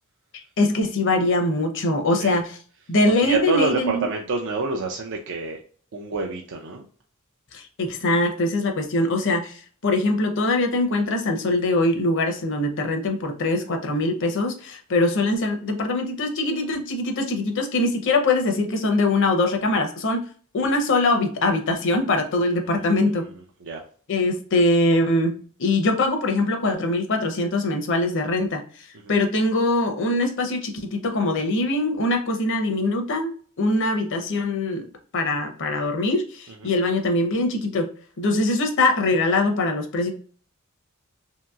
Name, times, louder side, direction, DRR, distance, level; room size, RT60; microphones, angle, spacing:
voice 1, 0.6-2.6 2.9-4.0 7.5-20.2 20.5-23.3 24.1-25.3 25.6-28.6 29.1-34.8 35.1-37.9 38.2-40.1, left 2 dB, 60° left, 4 dB, 0.7 m, -22 dB
voice 2, 3.1-5.6 5.9-6.8 22.7-23.0 23.6-23.8 29.0-29.1 36.5-36.7, right 3 dB, 60° right, 1 dB, 0.4 m, -28 dB
2.9 x 2.8 x 2.3 m, 0.44 s
head